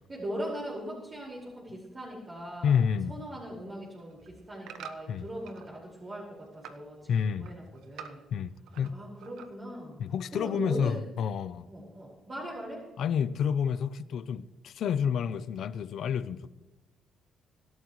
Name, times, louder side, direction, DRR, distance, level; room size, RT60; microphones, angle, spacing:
voice 1, 0.1-2.8 3.1-8.2 8.9-10.0 10.3-11.0 11.7-12.9, right 1 dB, 35° right, 5.3 m, -40 dB
voice 2, 2.6-3.2 5.1-5.3 7.1-7.5 8.3-9.0 10.0-11.7 13.0-16.5, left 7 dB, 70° left, 0.8 m, -29 dB
sound 1, 3.9-5.7 6.1-6.9 7.2-8.9 9.2-9.8 10.2-10.3, right 8 dB, 85° right, 1.2 m, -47 dB
25.5 x 12.0 x 3.2 m
cardioid pair, 90°, 0 cm